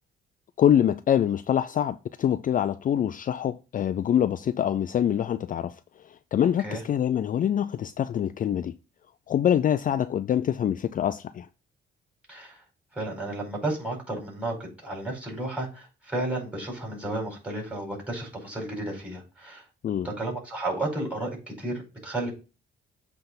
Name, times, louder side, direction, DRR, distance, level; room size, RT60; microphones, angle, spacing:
voice 1, 0.6-5.7 6.3-8.7 9.3-11.5 19.8-20.1, left 9 dB, 45° left, 0.4 m, -25 dB
voice 2, 12.3-12.6 12.9-19.6 20.0-22.3, right 2 dB, 5° right, 4.6 m, -32 dB
7.9 x 3.5 x 5.7 m
cardioid pair, 90°, 20 cm